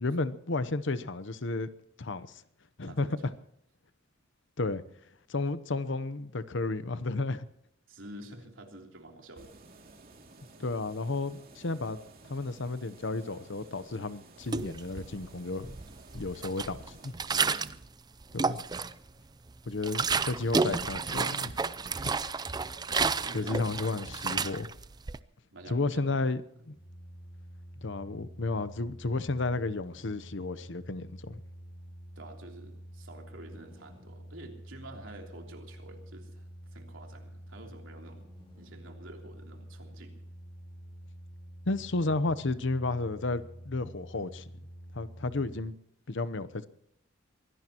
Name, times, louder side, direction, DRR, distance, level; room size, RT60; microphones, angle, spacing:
voice 1, 0.0-1.7 2.0-2.3 2.8-3.3 4.6-4.8 5.3-7.5 10.6-12.0 12.3-15.7 16.1-17.1 18.3-18.6 19.7-21.6 21.9-22.0 23.3-24.7 25.7-26.4 26.7-26.8 27.8-31.4 41.7-44.5 44.9-45.7 46.1-46.6, left 3 dB, 65° left, 0.9 m, -32 dB
voice 2, 2.8-3.2 7.9-9.5 17.5-18.2 22.0-22.1 22.9-24.2 25.5-26.2 26.5-26.6 32.1-38.2 38.5-40.2, right 1 dB, 80° right, 3.3 m, -49 dB
sound 1, 9.4-17.1, right 2 dB, 50° right, 2.6 m, -54 dB
sound 2, 14.4-15.3 15.6-17.9 18.2-19.1 19.5-25.2, right 4 dB, 20° right, 0.5 m, -31 dB
sound 3, 26.8-45.6, equal, 25° left, 5.1 m, -48 dB
24.0 x 17.0 x 3.0 m
head